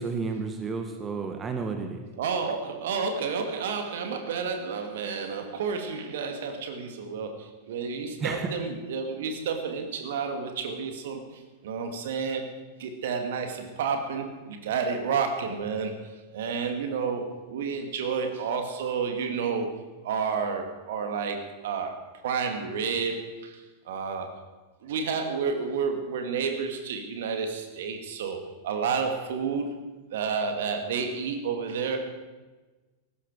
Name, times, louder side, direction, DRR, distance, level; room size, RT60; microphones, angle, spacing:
voice 1, 0.0-2.0 8.2-8.5, right 4 dB, 20° right, 5 dB, 1.7 m, -31 dB
voice 2, 2.2-16.0 16.3-24.3 24.8-29.7 30.1-32.1, right 5 dB, 55° right, 5 dB, 2.3 m, -30 dB
19.0 x 15.5 x 4.9 m, 1.2 s
figure-of-eight pair, 90°, 0 cm